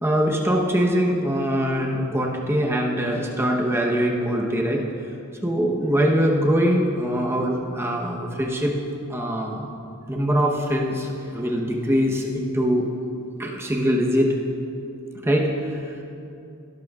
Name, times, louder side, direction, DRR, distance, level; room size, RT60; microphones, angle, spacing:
voice 1, 0.0-4.9 5.4-9.7 10.1-12.9 13.4-14.4 15.2-16.0, equal, 10° right, 0 dB, 0.9 m, -23 dB
16.5 x 12.0 x 2.4 m, 2.7 s
head